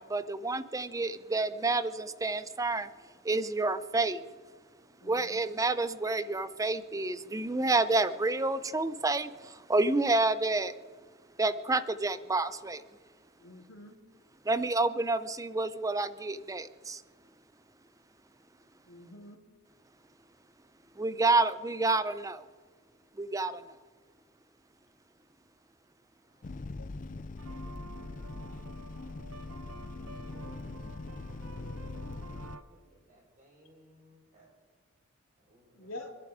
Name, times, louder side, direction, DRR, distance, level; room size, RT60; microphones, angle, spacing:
voice 1, 0.0-2.9 3.2-4.2 5.0-10.7 11.4-12.8 14.4-17.0 21.0-22.5 23.2-23.7, right 2 dB, 15° right, 14 dB, 0.5 m, -29 dB
voice 2, 5.0-5.4 13.4-14.0 18.9-19.4 26.7-27.0 35.7-36.1, left 1 dB, 70° left, 2 dB, 2.4 m, -47 dB
voice 3, 26.2-27.7 29.0-29.6 29.9-31.5 32.2-34.6 35.4-35.9, equal, 35° right, -2 dB, 5.9 m, -64 dB
sound 1, 26.4-32.6, left 3 dB, 40° left, 0.4 m, -42 dB
sound 2, 27.4-32.6, right 3 dB, 70° right, 0.9 m, -50 dB
25.5 x 11.0 x 4.9 m, 1.5 s
head